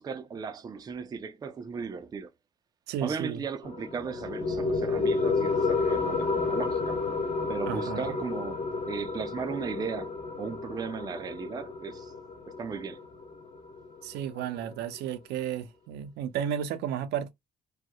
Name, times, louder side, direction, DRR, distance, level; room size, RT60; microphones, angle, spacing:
voice 1, 0.0-2.3 3.0-7.0 7.5-12.1 12.6-13.0, right 6 dB, 25° right, 0.4 m, -36 dB
voice 2, 2.9-3.4 7.7-8.1 14.0-17.3, right 9 dB, 80° right, 0.5 m, -33 dB
sound 1, 3.6-14.6, left 4 dB, 40° left, 0.6 m, -31 dB
2.3 x 2.0 x 2.7 m
cardioid pair, 110°, 17 cm